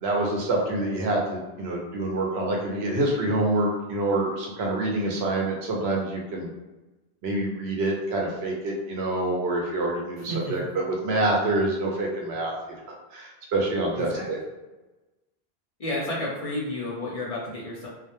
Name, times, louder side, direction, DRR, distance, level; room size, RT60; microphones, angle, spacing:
voice 1, 0.0-6.5 7.2-12.5 13.1-14.4, right 2 dB, 90° right, -1 dB, 0.9 m, -26 dB
voice 2, 13.9-14.3 15.8-17.9, left 1 dB, 50° left, -5 dB, 0.5 m, -31 dB
2.2 x 2.1 x 2.9 m, 1.1 s
omnidirectional pair, 1.0 m